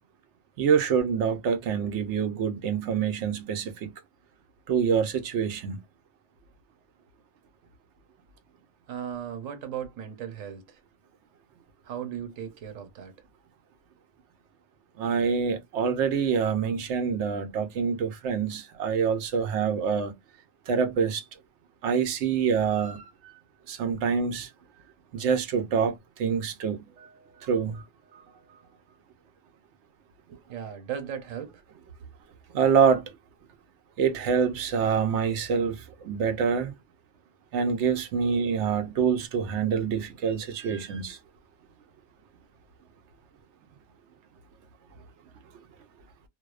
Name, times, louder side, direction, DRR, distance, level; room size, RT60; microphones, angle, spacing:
voice 1, 0.6-4.0 4.7-5.8 15.0-20.1 20.7-21.2 21.8-23.1 23.7-24.5 25.1-26.9 27.4-27.8 32.5-33.1 34.0-36.7 37.5-41.2, right 6 dB, 70° right, 0.9 m, -26 dB
voice 2, 8.9-10.8 11.8-13.1 27.0-29.0 30.3-31.6, right 8 dB, 85° right, 1.1 m, -38 dB
2.6 x 2.0 x 2.3 m
omnidirectional pair, 1.3 m